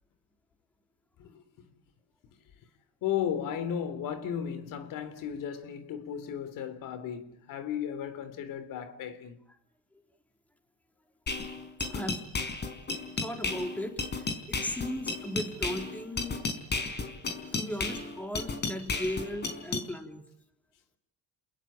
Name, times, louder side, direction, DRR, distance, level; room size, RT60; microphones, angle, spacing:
voice 1, 1.2-1.7 3.0-9.4, left 9 dB, 70° left, 3.8 m, -35 dB
sound 1, 11.3-19.9, left 3 dB, 30° left, 4.5 m, -33 dB
voice 2, 11.8-12.3 13.2-16.4 17.5-20.2, equal, 5° left, 3.7 m, -37 dB
29.0 x 21.0 x 8.9 m
cardioid pair, 125°, 34 cm